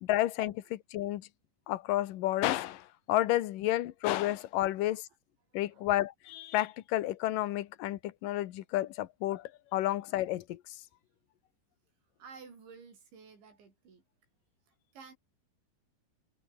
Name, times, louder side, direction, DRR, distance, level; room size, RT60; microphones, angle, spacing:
voice 1, 0.0-1.3 1.7-5.0 5.5-10.6, left 15 dB, 70° left, 2.2 m, -31 dB
voice 2, 5.5-5.9 12.2-14.1 14.7-15.2, right 5 dB, 85° right, 8.9 m, -53 dB
omnidirectional pair, 5.1 m